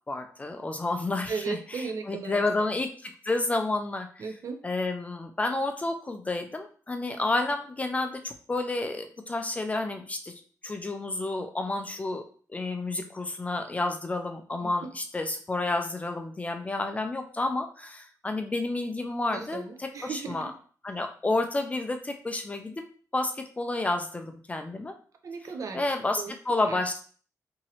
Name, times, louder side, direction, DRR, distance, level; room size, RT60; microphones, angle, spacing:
voice 1, 0.1-1.6 2.1-4.2 4.6-10.3 10.6-12.2 12.5-20.5 20.8-22.7 23.1-24.9 25.7-27.0, left 2 dB, 20° left, 5 dB, 0.3 m, -30 dB
voice 2, 1.3-2.4 4.2-4.7 14.6-14.7 19.3-20.5 25.2-25.8 26.2-26.3 26.7-26.8, right 5 dB, 55° right, 5 dB, 0.5 m, -36 dB
3.0 x 2.7 x 2.8 m, 0.43 s
wide cardioid pair, 140°, 7 cm